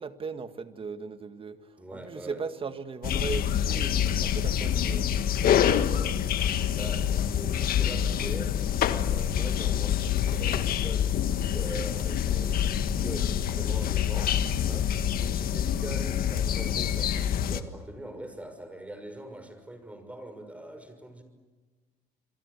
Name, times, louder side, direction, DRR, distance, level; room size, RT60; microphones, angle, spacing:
voice 1, 0.0-1.6 1.9-6.1, right 5 dB, 30° right, 9 dB, 1.9 m, -38 dB
voice 2, 1.8-2.4 6.7-14.4 14.7-21.2, right 1 dB, 10° right, 8 dB, 6.0 m, -42 dB
sound 1, 3.0-17.6, left 9 dB, 60° left, 1.6 m, -26 dB
28.0 x 23.0 x 8.4 m, 1.3 s
cardioid pair, 110°, 17 cm